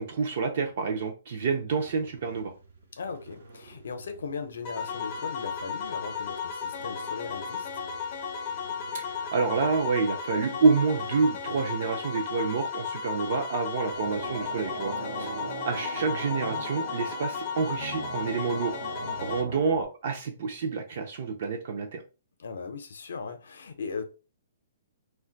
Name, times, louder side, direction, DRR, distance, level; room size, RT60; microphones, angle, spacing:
voice 1, 0.0-2.5 8.9-15.3 15.6-18.7 19.2-22.0, right 5 dB, 40° right, 0.4 m, -28 dB
sound 1, 1.8-11.7, right 2 dB, 65° right, 1.0 m, -51 dB
voice 2, 3.0-7.7 15.0-15.3 19.0-19.2 22.4-24.0, left 5 dB, 70° left, 0.6 m, -38 dB
sound 2, 4.6-19.4, left 6 dB, 20° left, 0.4 m, -35 dB
sound 3, 13.9-19.8, right 3 dB, 90° right, 0.8 m, -39 dB
2.5 x 2.2 x 3.8 m
hypercardioid pair, 180°, 0 cm